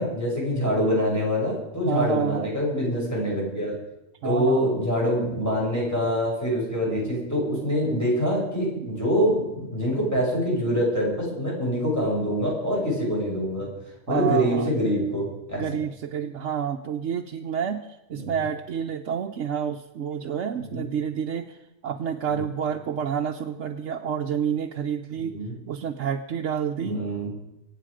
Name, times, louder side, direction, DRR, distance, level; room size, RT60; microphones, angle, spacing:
voice 1, 0.0-3.7 4.2-13.7 14.1-15.6 18.1-18.4 20.7-20.8 22.3-22.4 25.2-25.5 26.8-27.3, equal, 10° left, -5 dB, 6.4 m, -25 dB
voice 2, 1.9-2.5 4.2-4.7 8.8-8.9 14.1-14.7 15.6-17.8 18.1-21.6 21.8-25.4 25.7-27.1, right 8 dB, 70° right, 2 dB, 1.1 m, -29 dB
25.0 x 8.4 x 5.0 m, 0.90 s
omnidirectional pair, 1.3 m